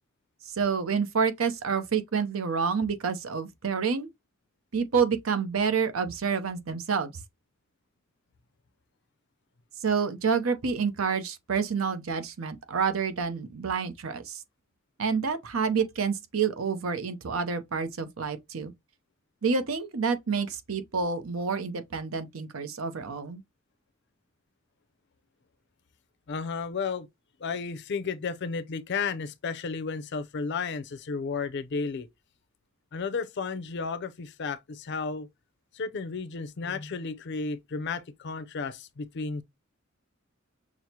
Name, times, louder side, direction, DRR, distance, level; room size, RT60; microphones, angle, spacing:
voice 1, 0.5-4.1 4.7-7.1 9.8-14.4 15.0-18.7 19.4-23.4, right 5 dB, 80° right, 0.7 m, -28 dB
voice 2, 26.3-27.1 27.4-32.1 32.9-35.3 35.7-39.4, left 5 dB, 55° left, 0.5 m, -33 dB
6.1 x 2.0 x 2.7 m
head